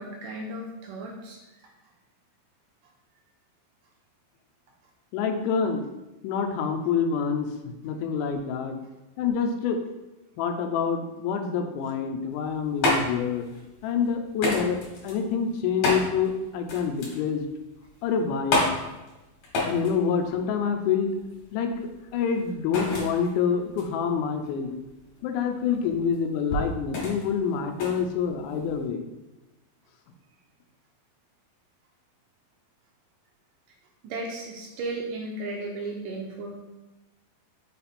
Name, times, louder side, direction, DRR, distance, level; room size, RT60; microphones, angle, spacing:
voice 1, 0.0-1.4 34.0-36.6, right 2 dB, 80° right, 0 dB, 2.1 m, -35 dB
voice 2, 5.1-5.9 6.2-8.8 9.2-9.8 10.4-13.5 13.8-17.5 18.0-18.7 19.6-21.1 21.5-24.7 25.2-29.1, left 6 dB, 80° left, 5 dB, 1.8 m, -27 dB
sound 1, 12.3-28.9, left 2 dB, 55° left, 2.3 m, -31 dB
5.9 x 4.2 x 4.2 m, 1.0 s
omnidirectional pair, 4.3 m